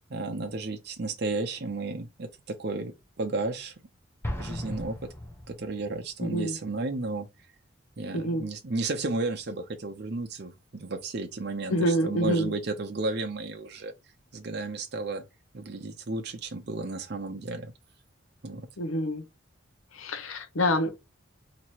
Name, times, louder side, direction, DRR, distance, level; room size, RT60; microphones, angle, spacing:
voice 1, 0.1-3.7 4.4-5.0 5.5-7.3 8.0-13.9 14.3-15.3 15.5-17.7 18.4-18.7, right 3 dB, 55° right, 0.6 m, -33 dB
Explosion, 4.2-6.1, left 1 dB, 10° left, 0.7 m, -36 dB
voice 2, 6.2-6.5 8.1-8.5 11.7-12.5 18.8-19.2 19.9-21.0, equal, 90° left, 0.8 m, -27 dB
2.9 x 2.9 x 4.3 m
head